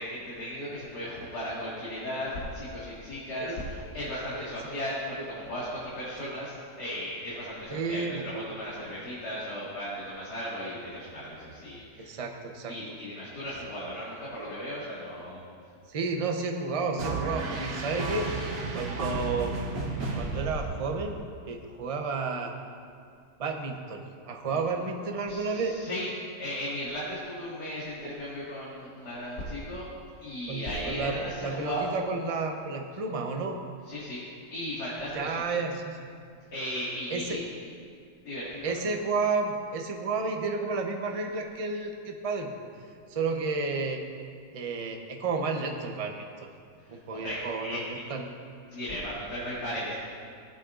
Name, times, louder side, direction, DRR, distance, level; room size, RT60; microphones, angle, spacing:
voice 1, 0.0-12.1 12.7-15.4 17.3-17.5 24.5-24.6 25.3-26.1 26.4-29.8 30.2-31.9 33.9-34.2 34.5-35.4 36.5-37.4 38.2-38.7 46.9-47.8 48.7-49.9, equal, 70° left, -9 dB, 2.5 m, -36 dB
voice 2, 7.7-8.3 12.0-12.7 15.9-18.3 18.7-19.5 20.2-22.5 23.4-25.8 30.5-33.6 35.1-36.0 37.1-37.4 38.6-42.5 43.1-44.0 44.5-46.1 46.4-46.5 46.9-47.8 48.1-48.2, right 4 dB, 45° right, 3 dB, 0.4 m, -31 dB
sound 1, 17.0-21.3, right 3 dB, 75° right, 1.7 m, -33 dB
18.0 x 8.5 x 2.5 m, 2.3 s
omnidirectional pair, 1.8 m